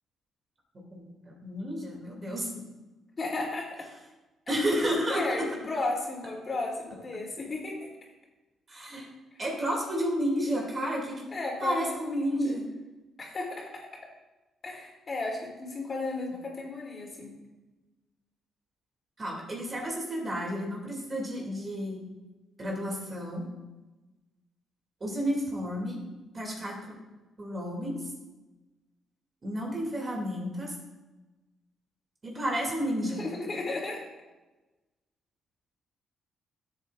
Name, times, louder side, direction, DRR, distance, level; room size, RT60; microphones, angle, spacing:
voice 1, 0.7-2.5 4.5-5.5 8.7-9.1 9.4-11.2 11.6-12.6 19.2-22.0 22.6-23.4 25.0-26.0 26.3-27.0 27.4-28.0 29.4-30.7 32.2-33.2, equal, 35° right, -1 dB, 2.6 m, -31 dB
voice 2, 3.2-3.9 4.5-4.6 5.1-7.9 11.3-12.6 13.2-13.9 14.6-17.3 33.2-34.1, left 3 dB, 35° left, -2 dB, 3.0 m, -34 dB
12.5 x 8.1 x 2.5 m, 1.1 s
cardioid pair, 90°, 0 cm